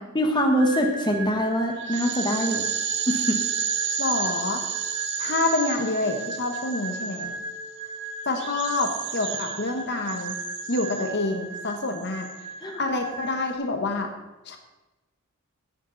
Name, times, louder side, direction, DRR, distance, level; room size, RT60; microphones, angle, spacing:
voice 1, 0.1-2.7 3.1-3.4 12.6-12.8, equal, 20° left, 2 dB, 1.4 m, -24 dB
sound 1, 0.6-13.5, right 6 dB, 55° right, 1.0 m, -32 dB
voice 2, 4.0-4.6 5.2-7.3 8.3-10.3 10.7-12.3 12.8-14.1 14.5-14.6, left 2 dB, 50° left, 4 dB, 1.3 m, -27 dB
16.0 x 8.8 x 4.1 m, 1.1 s
head